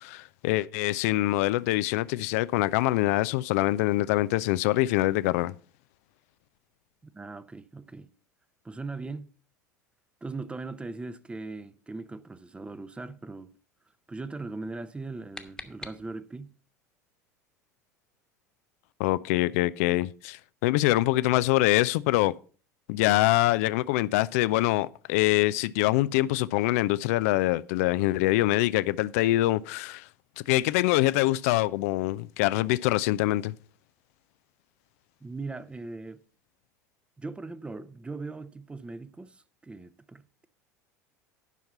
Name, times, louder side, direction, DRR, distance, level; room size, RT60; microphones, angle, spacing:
voice 1, 0.0-5.5 19.0-22.3 22.9-30.1 30.5-33.5, left 17 dB, 55° left, 0.4 m, -24 dB
voice 2, 7.0-8.1 8.6-9.3 10.2-13.5 14.1-16.5 35.2-36.2 37.2-40.5, right 3 dB, 10° right, 0.7 m, -39 dB
sound 1, 14.8-16.5, left 2 dB, 5° left, 1.2 m, -46 dB
11.0 x 5.8 x 5.4 m
figure-of-eight pair, 70°, 9 cm